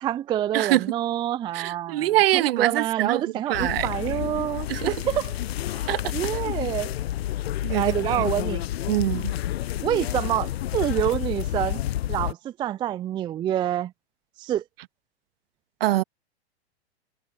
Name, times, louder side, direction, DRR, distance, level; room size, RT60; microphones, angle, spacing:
voice 1, 0.0-5.3 5.7-5.8 6.1-6.9 7.7-8.6 9.8-11.8 12.1-13.9 14.4-14.6, right 11 dB, 15° right, 0.4 m, -27 dB
voice 2, 0.5-0.9 1.5-3.2 3.5-3.9 4.7-4.9 5.9-6.1 7.6-8.2 8.9-9.3 15.8-16.0, right 15 dB, 60° right, 1.8 m, -24 dB
sound 1, 3.5-12.3, left 13 dB, 65° left, 0.7 m, -29 dB
hypercardioid pair, 105°, 33 cm